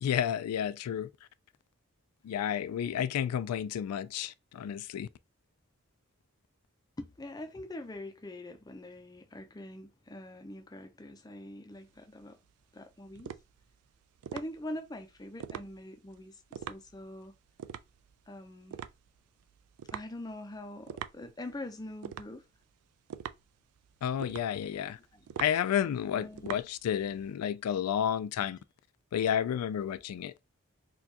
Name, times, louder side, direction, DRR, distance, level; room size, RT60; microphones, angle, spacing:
voice 1, 0.0-1.1 2.2-5.1 24.0-25.0 25.4-28.6 29.1-30.3, left 9 dB, 90° left, 0.3 m, -31 dB
voice 2, 7.0-12.4 12.7-13.4 14.3-17.3 18.3-18.8 19.9-22.4 24.7-25.3 26.1-26.6 29.9-30.0, left 1 dB, 15° left, 0.4 m, -44 dB
sound 1, 11.7-27.3, right 8 dB, 85° right, 0.3 m, -45 dB
4.4 x 2.3 x 2.8 m
head